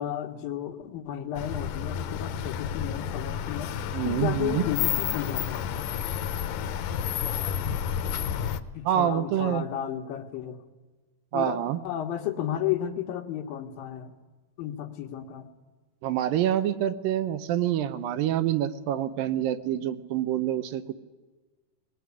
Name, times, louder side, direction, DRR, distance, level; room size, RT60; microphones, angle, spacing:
voice 1, 0.0-3.7 4.0-6.0 8.7-10.6 11.3-11.6 11.8-14.1 14.6-15.5, left 10 dB, 90° left, 4 dB, 3.3 m, -33 dB
sound 1, 1.4-8.6, left 9 dB, 75° left, 2.3 m, -30 dB
voice 2, 3.9-4.6 8.9-9.7 11.3-11.8 16.0-20.9, right 11 dB, 80° right, 11 dB, 2.7 m, -26 dB
21.0 x 20.0 x 9.8 m, 1.3 s
omnidirectional pair, 4.0 m